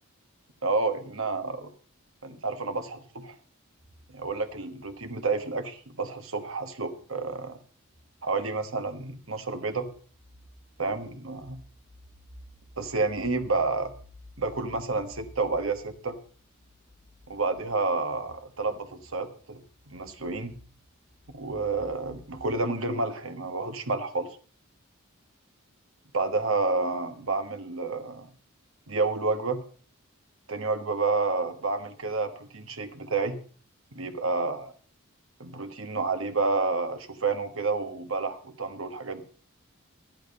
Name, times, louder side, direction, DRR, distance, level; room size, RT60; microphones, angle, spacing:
voice 1, 0.6-1.7 2.2-3.3 4.1-7.6 8.2-9.9 10.8-11.6 12.8-13.9 14.4-16.2 17.3-20.5 21.3-24.3 26.1-28.3 28.9-29.6 30.5-33.4 33.9-34.7 35.4-39.2, right 3 dB, 70° right, 8 dB, 1.4 m, -30 dB
sound 1, 3.8-5.6 6.9-7.5 7.8-22.6, left 1 dB, 5° left, 1.7 m, -54 dB
11.5 x 10.5 x 5.4 m, 0.41 s
head